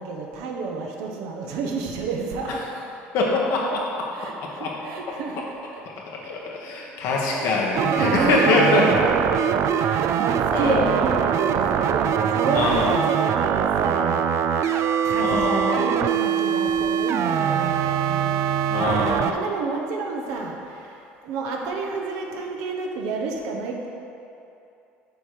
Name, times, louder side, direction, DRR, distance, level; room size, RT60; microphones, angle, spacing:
voice 1, 0.0-2.7 4.1-5.8 7.1-7.6 7.9-18.4 19.2-23.9, right 4 dB, 75° right, 1 dB, 0.9 m, -29 dB
voice 2, 3.1-4.1 4.4-4.7 6.2-8.8 10.5-10.9 12.5-13.0 15.2-15.9 18.7-19.4, left 3 dB, 70° left, -2 dB, 1.3 m, -23 dB
sound 1, 7.7-19.3, right 8 dB, 60° right, 0.3 m, -23 dB
6.8 x 4.4 x 4.8 m, 2.8 s
supercardioid pair, 75°, 6 cm